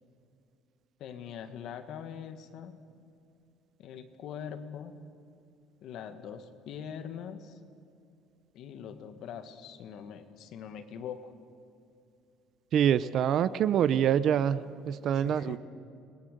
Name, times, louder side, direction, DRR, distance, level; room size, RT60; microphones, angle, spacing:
voice 1, 1.0-2.8 3.8-5.0 5.8-7.6 8.5-11.3 15.2-15.6, left 8 dB, 45° left, 9 dB, 1.7 m, -42 dB
voice 2, 12.7-15.6, right 9 dB, 40° right, 17 dB, 0.6 m, -26 dB
29.5 x 21.0 x 6.7 m, 2.5 s
cardioid pair, 180°, 0 cm